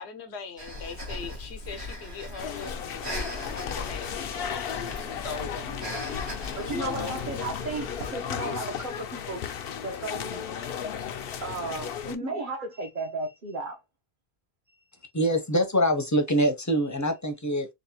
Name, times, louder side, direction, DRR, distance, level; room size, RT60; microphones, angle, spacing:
voice 1, 0.0-4.7 5.2-5.6 6.6-7.1, left 5 dB, 85° left, 1.1 m, -40 dB
Breathing, 0.6-8.2, left 1 dB, 85° right, 1.8 m, -39 dB
sound 1, 2.4-12.2, left 8 dB, 70° left, 0.7 m, -35 dB
voice 2, 6.6-9.4 9.8-10.4 11.4-13.8, right 3 dB, 55° right, 1.0 m, -34 dB
voice 3, 15.1-17.7, equal, 20° left, 0.6 m, -24 dB
3.9 x 2.4 x 2.8 m
omnidirectional pair, 1.1 m